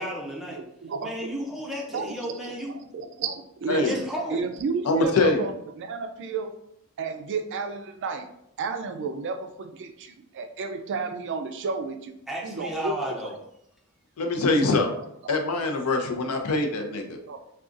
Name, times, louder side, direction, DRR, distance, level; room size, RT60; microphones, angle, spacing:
voice 1, 0.0-0.6 1.0-2.7 3.9-4.5 12.3-13.3, equal, ahead, -3 dB, 0.7 m, -33 dB
voice 2, 0.5-1.3 1.9-6.5 7.0-8.3 8.6-12.2 12.4-12.9 15.2-15.3 17.3-17.4, right 4 dB, 55° right, 6 dB, 0.3 m, -32 dB
voice 3, 4.9-5.4 14.2-14.9 15.3-17.2, left 2 dB, 85° left, 4 dB, 0.5 m, -23 dB
3.7 x 2.3 x 2.5 m, 0.75 s
head